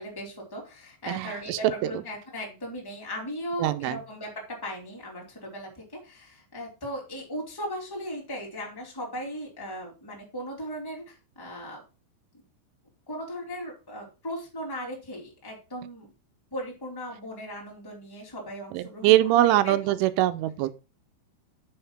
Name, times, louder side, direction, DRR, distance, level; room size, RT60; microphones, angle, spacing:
voice 1, 0.0-4.3 4.6-11.8 13.1-16.1 16.5-19.9, equal, 5° left, 2.4 m, -37 dB
voice 2, 1.1-2.0 3.6-4.0 18.7-20.7, right 14 dB, 85° right, 3.2 m, -23 dB
7.0 x 5.7 x 5.9 m
omnidirectional pair, 5.5 m